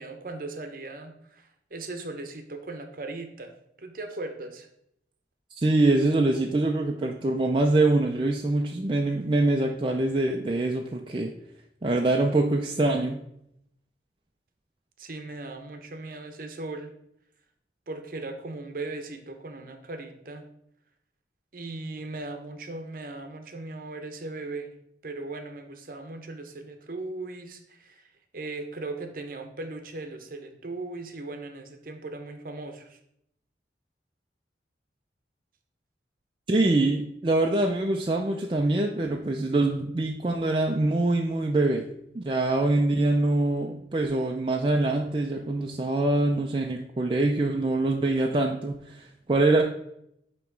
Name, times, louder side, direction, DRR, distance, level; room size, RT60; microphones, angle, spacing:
voice 1, 0.0-3.5 3.8-4.7 15.0-16.9 17.9-20.5 21.5-24.7 25.0-28.1 28.3-33.0, right 2 dB, 50° right, 6 dB, 0.8 m, -38 dB
voice 2, 5.6-11.3 11.8-13.2 36.5-41.9 42.1-49.6, right 2 dB, 30° right, 1 dB, 0.4 m, -24 dB
9.0 x 3.0 x 4.6 m, 0.76 s
head